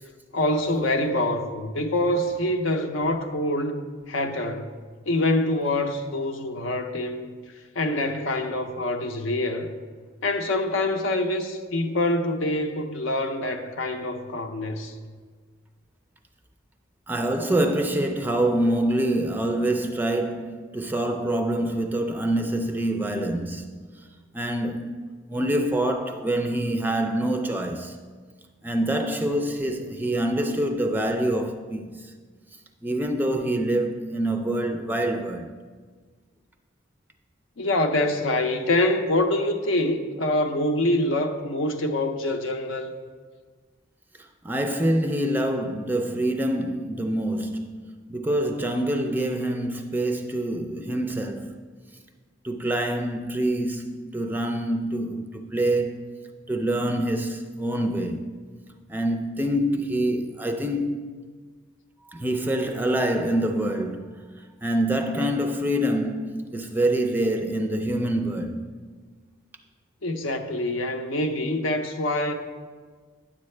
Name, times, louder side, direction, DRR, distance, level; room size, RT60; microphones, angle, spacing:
voice 1, 0.3-4.7 5.1-7.3 7.7-9.7 10.2-14.9 37.6-42.9 70.0-72.3, left 1 dB, 75° left, 0.7 m, -25 dB
voice 2, 17.1-23.7 24.3-28.0 28.6-32.1 32.8-35.5 44.4-51.6 52.4-58.4 58.9-61.2 62.1-68.7, right 1 dB, 10° right, 0.4 m, -26 dB
9.8 x 7.4 x 3.2 m
head